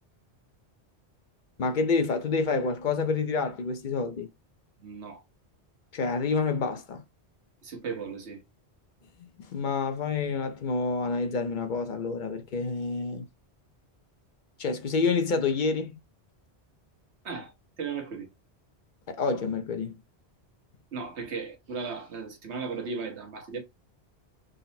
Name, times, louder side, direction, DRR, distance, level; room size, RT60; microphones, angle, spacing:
voice 1, 1.6-4.3 5.9-7.0 9.4-13.2 14.6-16.0 19.1-19.9, left 4 dB, 55° left, 0.7 m, -28 dB
voice 2, 4.8-5.2 7.6-8.4 17.2-17.5 17.8-18.3 20.9-23.6, right 5 dB, 90° right, 1.3 m, -36 dB
3.9 x 2.0 x 4.1 m
omnidirectional pair, 1.1 m